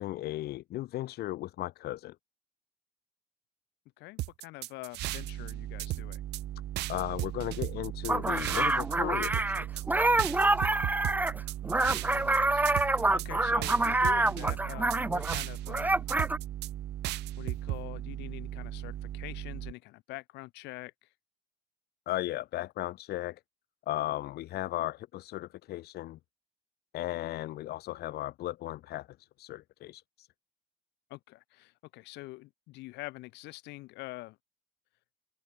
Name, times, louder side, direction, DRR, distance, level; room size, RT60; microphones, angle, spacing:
voice 1, 0.0-2.1 6.9-9.4 9.7-9.8 22.1-23.4 23.9-26.2 26.9-29.1 29.4-30.3, left 15 dB, 70° left, 1.2 m, -36 dB
voice 2, 4.0-6.2 12.1-16.1 17.4-20.9 31.1-34.4, left 20 dB, 90° left, 4.7 m, -45 dB
sound 1, 4.2-5.5 5.8-6.4 6.8-9.0 9.2-9.8 10.2-12.4 12.7-13.3 13.6-15.8 16.1-16.7 17.0-17.8, right 18 dB, 85° right, 3.7 m, -35 dB
sound 2, 5.0-19.7, right 12 dB, 60° right, 2.5 m, -39 dB
sound 3, 8.1-15.4 15.7-16.4, right 2 dB, 10° right, 1.1 m, -27 dB
cardioid pair, 110°, 17 cm